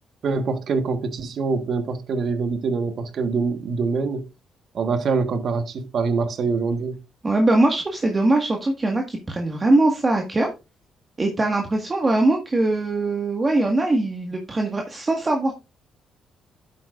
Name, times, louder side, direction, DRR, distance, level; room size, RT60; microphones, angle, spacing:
voice 1, 0.2-4.3 4.7-7.0, right 4 dB, 60° right, 1.4 m, -24 dB
voice 2, 7.2-10.5 11.2-15.5, right 2 dB, 25° right, 1.7 m, -21 dB
11.5 x 8.6 x 2.5 m
cardioid pair, 90°, 0 cm